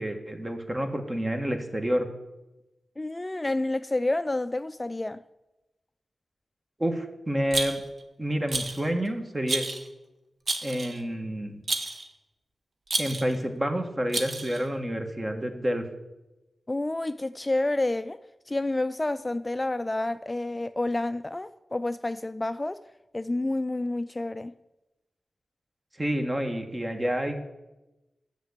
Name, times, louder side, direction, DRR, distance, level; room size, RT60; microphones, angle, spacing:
voice 1, 0.0-2.1 6.8-7.8 8.2-9.7 10.6-11.6 13.0-15.8 26.0-27.4, equal, 25° right, 1.6 m, -29 dB
voice 2, 3.0-5.2 16.7-18.2 18.5-22.8 23.1-24.5, left 2 dB, 30° left, 0.3 m, -29 dB
Rattle, 7.5-8.0 8.5-8.9 9.5-9.9 10.5-11.0 11.7-12.1 12.9-13.4 14.1-14.6, right 3 dB, 65° right, 1.1 m, -30 dB
8.0 x 6.7 x 8.1 m
cardioid pair, 45°, 0 cm